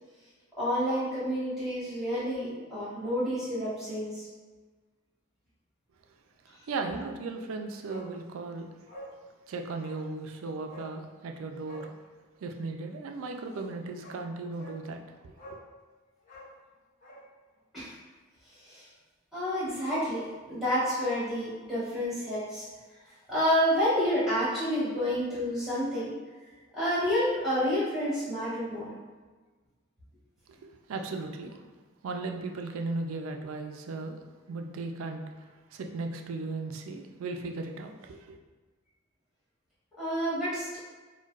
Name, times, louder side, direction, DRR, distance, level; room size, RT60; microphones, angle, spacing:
voice 1, 0.6-4.3 17.7-18.0 18.6-18.8 19.3-22.6 23.3-26.1 26.7-28.9 40.0-40.8, equal, ahead, -11 dB, 1.4 m, -29 dB
voice 2, 6.4-8.7 9.5-11.9 12.4-15.6 30.5-31.6 32.0-34.2 34.5-38.4, right 3 dB, 75° right, 4 dB, 0.4 m, -37 dB
Bark, 7.9-8.1 8.4-8.5 8.9-9.2 9.8-10.0 10.7-10.9 11.6-11.9 13.5-13.6 14.0-14.2 14.6-14.8 15.4-15.7 16.2-17.3 17.5-17.6, equal, 35° left, 0.9 m, -47 dB
4.4 x 2.2 x 2.3 m, 1.3 s
head